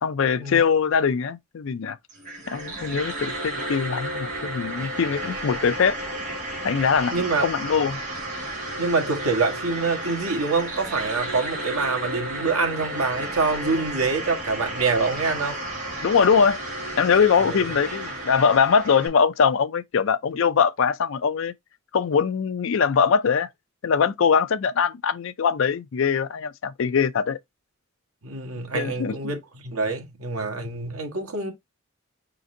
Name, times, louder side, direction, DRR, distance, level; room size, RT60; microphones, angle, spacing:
voice 1, 0.0-2.0 2.5-6.0 6.6-8.0 16.0-16.6 17.0-21.5 21.9-23.5 23.8-27.4 28.7-29.2, left 6 dB, 60° left, 0.4 m, -22 dB
sound 1, 2.1-19.1, right 1 dB, 35° right, 1.8 m, -32 dB
voice 2, 7.1-7.5 8.8-15.6 17.4-17.7 28.2-31.5, right 4 dB, 85° right, 1.4 m, -26 dB
5.1 x 3.9 x 2.6 m
head